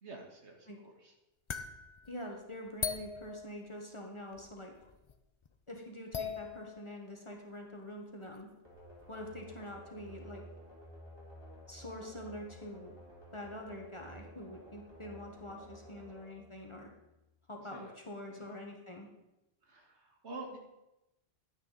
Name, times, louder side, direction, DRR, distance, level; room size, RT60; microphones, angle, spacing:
voice 1, 0.0-1.1 17.7-17.9 18.3-18.5 19.6-20.6, right 2 dB, 70° right, 2 dB, 2.0 m, -48 dB
sound 1, 1.5-4.1 4.3-5.2 5.4-5.5 6.0-7.0 7.8-7.9 8.3-8.4 8.8-9.2, left 6 dB, 40° left, 0.4 m, -41 dB
voice 2, 2.1-4.7 5.7-8.5 9.1-10.4 11.7-12.9 13.3-16.9 17.5-19.1, left 1 dB, 25° left, 1 dB, 1.4 m, -45 dB
sound 2, 8.6-17.3, equal, 20° right, 3.5 m, -53 dB
11.0 x 9.7 x 4.1 m, 0.95 s
omnidirectional pair, 1.2 m